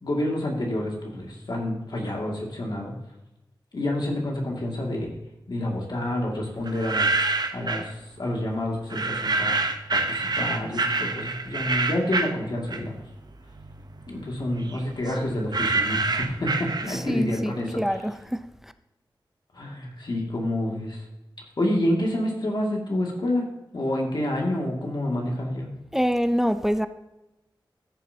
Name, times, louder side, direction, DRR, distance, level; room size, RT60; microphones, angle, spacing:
voice 1, 0.0-2.9 3.7-5.1 5.5-7.2 7.5-9.6 9.9-13.0 14.1-18.0 19.5-21.0 21.6-23.5 23.7-25.7, left 1 dB, 60° left, 2.2 m, -28 dB
sound 1, 6.7-7.9 8.9-13.1 13.5-17.2, right 3 dB, 55° right, 0.7 m, -27 dB
voice 2, 16.9-18.4 25.9-26.9, equal, 5° right, 0.5 m, -25 dB
14.5 x 7.2 x 2.8 m
wide cardioid pair, 85°, 8 cm